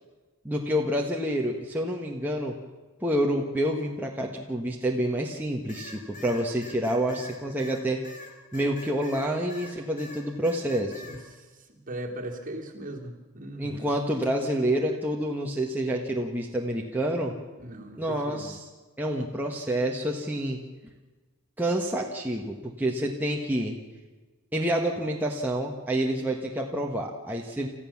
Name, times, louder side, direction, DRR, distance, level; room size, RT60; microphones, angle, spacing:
voice 1, 0.4-2.5 3.0-8.0 8.5-10.9 13.6-17.3 18.0-18.6 19.0-20.6 21.6-23.7 24.5-27.7, right 1 dB, 10° right, -1 dB, 1.4 m, -28 dB
sound 1, 5.7-9.7 10.0-11.2, left 2 dB, 35° left, 3.6 m, -44 dB
voice 2, 11.1-13.9 17.6-18.5, right 1 dB, 40° right, 1 dB, 2.9 m, -39 dB
29.0 x 14.5 x 7.2 m, 1.3 s
head